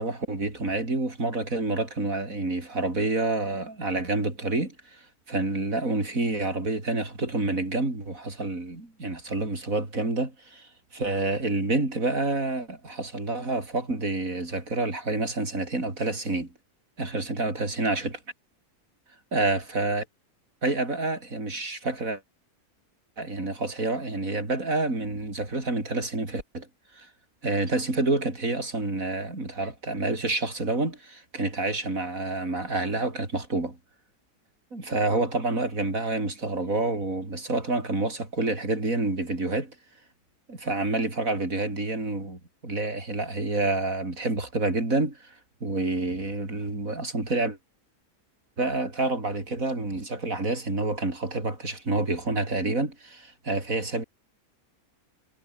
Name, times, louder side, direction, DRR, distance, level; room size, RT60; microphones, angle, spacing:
voice 1, 0.0-5.0 5.3-16.5 17.0-18.2 19.3-20.1 20.6-22.2 23.2-26.7 26.9-27.1 27.4-33.8 34.7-39.7 40.5-45.4 45.6-47.6 48.6-54.0, right 2 dB, 60° right, 6.0 m, -28 dB
omnidirectional pair, 1.6 m